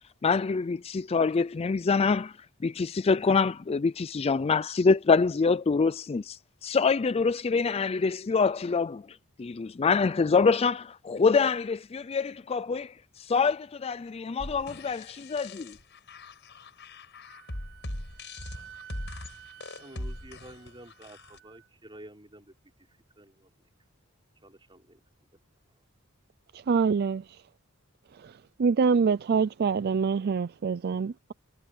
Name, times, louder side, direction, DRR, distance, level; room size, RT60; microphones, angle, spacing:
voice 1, 0.2-2.3 2.6-15.7, left 4 dB, 25° left, 0.4 m, -25 dB
sound 1, 14.4-21.4, left 1 dB, 55° left, 5.6 m, -41 dB
Wind instrument woodwind instrument, 17.2-21.7, right 11 dB, 65° right, 4.1 m, -52 dB
voice 2, 19.8-23.5 24.4-25.3 25.7-25.8, right 1 dB, 20° right, 5.5 m, -51 dB
voice 3, 26.7-27.2 28.2-28.3 28.6-31.3, right 5 dB, 45° right, 0.4 m, -25 dB
head